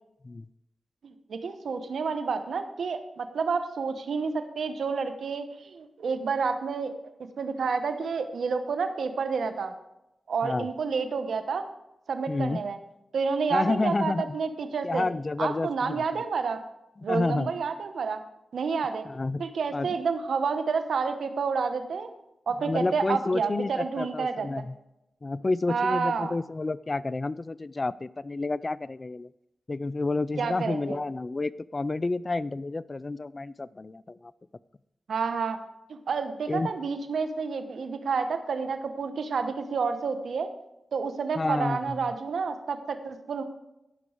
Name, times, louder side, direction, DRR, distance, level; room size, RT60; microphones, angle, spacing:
voice 1, 1.0-6.9 7.4-9.7 10.3-11.6 12.1-12.8 13.1-15.1 15.4-16.6 17.0-18.2 18.5-19.0 19.4-22.1 22.5-24.5 25.7-26.3 30.4-31.0 35.1-35.6 35.9-40.5 40.9-43.4, right 5 dB, 85° right, 9 dB, 1.0 m, -29 dB
voice 2, 12.3-12.6 13.5-14.4 14.8-16.2 17.0-17.5 19.1-19.4 19.7-20.0 22.6-24.8 25.2-29.3 29.7-34.3 36.5-36.7 41.4-42.1, left 3 dB, 40° left, 18 dB, 0.4 m, -30 dB
16.5 x 6.1 x 4.9 m, 0.89 s
cardioid pair, 50°, 0 cm